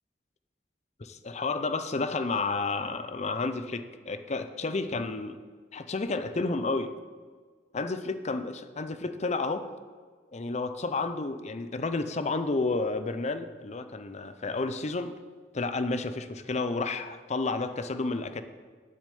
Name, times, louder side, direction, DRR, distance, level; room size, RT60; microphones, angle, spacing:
voice 1, 1.0-5.4 5.7-6.9 7.7-9.7 10.3-15.1 15.5-18.4, left 3 dB, 40° left, 10 dB, 0.6 m, -31 dB
8.7 x 6.6 x 8.4 m, 1.5 s
head